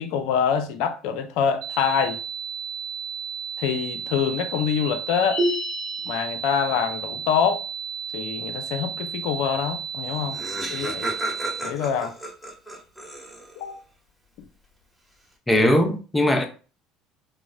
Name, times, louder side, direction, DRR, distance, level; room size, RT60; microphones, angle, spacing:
voice 1, 0.0-2.2 3.6-5.4 6.0-7.6 8.1-10.4 10.7-11.1 11.6-12.2 13.6-13.8 14.4-14.5, left 7 dB, 70° left, 0.5 m, -25 dB
sound 1, 1.6-11.6, right 7 dB, 65° right, 0.5 m, -33 dB
sound 2, 5.3-6.1, equal, 50° right, 1.0 m, -26 dB
Laughter, 9.8-9.9 10.0-13.7, right 1 dB, 5° right, 1.2 m, -33 dB
voice 2, 15.5-16.4, left 1 dB, 10° left, 0.7 m, -19 dB
3.9 x 2.0 x 2.4 m
hypercardioid pair, 70°, 0 cm